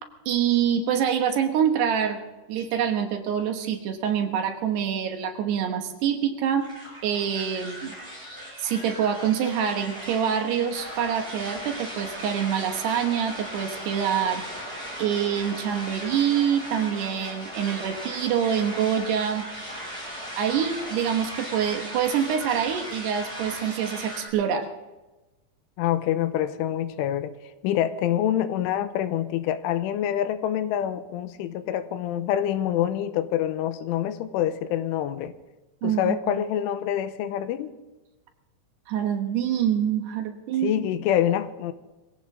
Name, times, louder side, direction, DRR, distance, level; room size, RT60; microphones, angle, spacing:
voice 1, 0.3-2.2 2.5-6.7 7.0-7.9 8.6-14.4 15.0-19.5 20.4-24.7 35.8-36.2 38.9-40.7, right 8 dB, 70° right, 5 dB, 3.0 m, -25 dB
sound 1, 6.6-24.3, equal, 5° left, 6.3 m, -37 dB
voice 2, 25.8-27.3 27.6-35.3 35.8-37.7 40.6-41.7, left 11 dB, 90° left, 11 dB, 3.4 m, -26 dB
22.5 x 16.5 x 3.7 m, 1.1 s
omnidirectional pair, 5.5 m